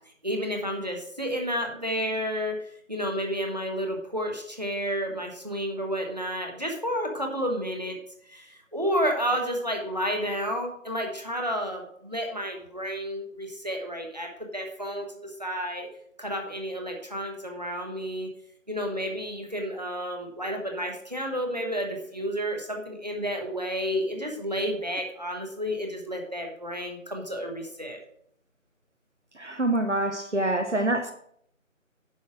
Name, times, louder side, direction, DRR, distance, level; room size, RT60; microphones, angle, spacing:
voice 1, 0.2-2.6 2.9-8.0 8.3-15.0 15.4-15.9 16.2-18.3 18.7-28.0, equal, 30° right, 2 dB, 1.3 m, -31 dB
voice 2, 29.4-31.1, right 1 dB, 60° right, 6 dB, 1.0 m, -26 dB
10.0 x 6.1 x 5.0 m, 0.68 s
figure-of-eight pair, 180°, 41 cm